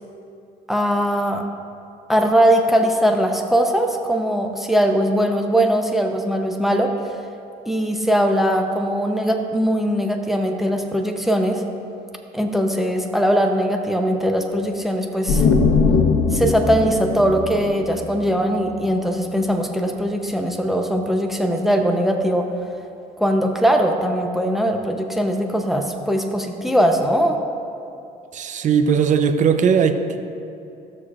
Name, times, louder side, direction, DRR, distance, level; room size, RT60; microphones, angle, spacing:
voice 1, 0.7-1.4 2.1-6.9 7.7-11.6 12.3-15.5 16.3-22.5 23.2-27.4, equal, ahead, 3 dB, 0.7 m, -20 dB
sound 1, 15.3-18.9, left 4 dB, 70° left, 0.9 m, -20 dB
voice 2, 28.3-30.2, right 6 dB, 45° right, 7 dB, 0.7 m, -18 dB
16.0 x 6.5 x 2.5 m, 2.7 s
cardioid pair, 110°, 17 cm